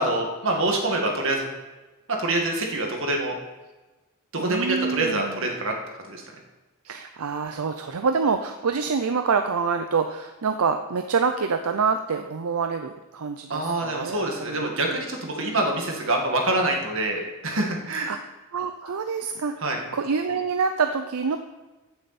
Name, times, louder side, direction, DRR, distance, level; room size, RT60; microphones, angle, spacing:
voice 1, 0.0-1.4 2.2-3.4 4.3-5.7 6.0-6.2 13.5-18.1 19.6-19.8, right 2 dB, 60° right, 1 dB, 1.9 m, -25 dB
voice 2, 4.3-5.5 6.8-14.7 18.1-18.2 18.5-21.4, right 5 dB, 80° right, 7 dB, 0.6 m, -26 dB
15.5 x 7.0 x 4.2 m, 1.1 s
head